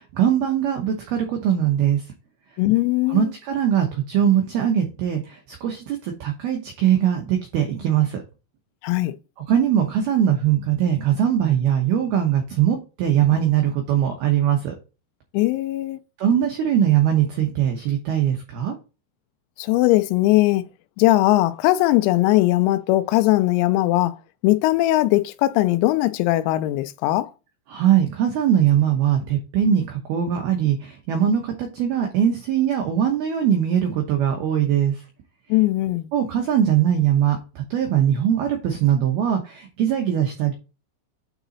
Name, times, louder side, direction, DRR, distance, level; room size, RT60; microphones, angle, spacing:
voice 1, 0.0-2.0 3.1-8.2 9.5-14.8 16.2-18.8 27.7-34.9 36.1-40.5, right 9 dB, 85° right, 2.2 m, -21 dB
voice 2, 2.6-3.3 8.8-9.1 15.3-16.0 19.6-20.6 21.0-24.1 24.4-27.3 35.5-36.1, left 17 dB, 85° left, 3.4 m, -19 dB
9.2 x 4.0 x 4.0 m
omnidirectional pair, 6.0 m